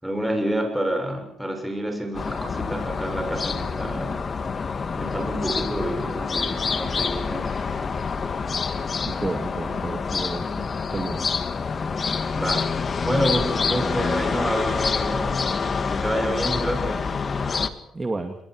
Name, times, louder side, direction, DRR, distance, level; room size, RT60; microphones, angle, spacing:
voice 1, 0.0-4.3 5.0-7.6 12.4-12.7 13.0-15.4 15.9-17.1, right 1 dB, 5° right, 4 dB, 7.0 m, -28 dB
sound 1, 2.1-17.7, left 5 dB, 40° left, 1.8 m, -27 dB
voice 2, 9.0-10.7 10.9-11.2 17.9-18.4, right 3 dB, 25° right, 5 dB, 2.2 m, -31 dB
27.0 x 23.0 x 4.8 m, 0.75 s
cardioid pair, 90°, 0 cm